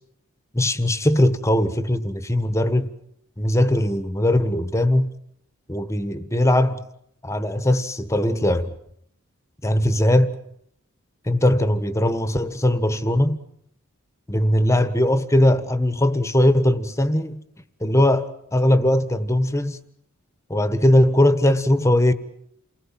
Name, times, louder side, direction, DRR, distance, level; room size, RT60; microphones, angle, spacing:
voice 1, 0.5-2.9 3.4-5.1 5.7-6.8 7.2-8.7 9.6-10.4 11.2-13.4 14.3-17.4 17.8-19.8 20.5-22.1, left 1 dB, 15° left, 1.4 m, -20 dB
29.0 x 20.5 x 7.5 m
head